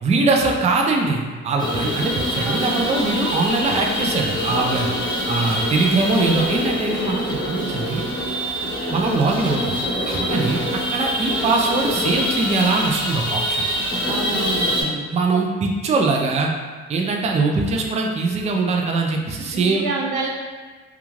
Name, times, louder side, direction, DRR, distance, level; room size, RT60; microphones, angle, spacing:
voice 1, 0.0-4.9 5.3-8.1 8.9-9.7 10.0-10.6 10.9-13.7 14.8-16.5 16.9-19.8, right 3 dB, 25° right, 1 dB, 0.3 m, -22 dB
sound 1, 1.6-14.8, equal, 15° left, 0.9 m, -25 dB
voice 2, 14.1-15.1 19.5-20.3, right 3 dB, 90° right, -1 dB, 0.6 m, -28 dB
2.3 x 2.3 x 3.1 m, 1.4 s
cardioid pair, 90°, 30 cm